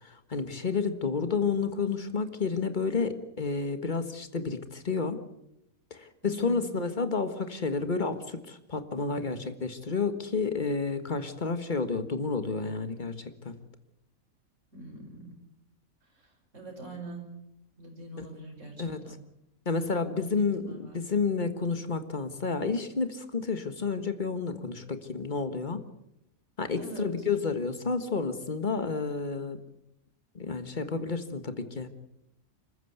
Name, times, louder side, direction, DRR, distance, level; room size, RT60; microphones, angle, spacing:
voice 1, 0.0-5.2 5.9-13.5 18.2-18.3 18.8-19.0 19.7-25.8 26.6-29.6 30.4-31.9, left 4 dB, 35° left, 9 dB, 1.6 m, -30 dB
voice 2, 6.2-6.6 14.7-15.4 16.5-17.3 17.8-19.2 20.2-21.2 26.8-27.1, right 2 dB, 60° right, 2 dB, 5.4 m, -44 dB
25.5 x 14.5 x 8.2 m, 0.83 s
omnidirectional pair, 1.5 m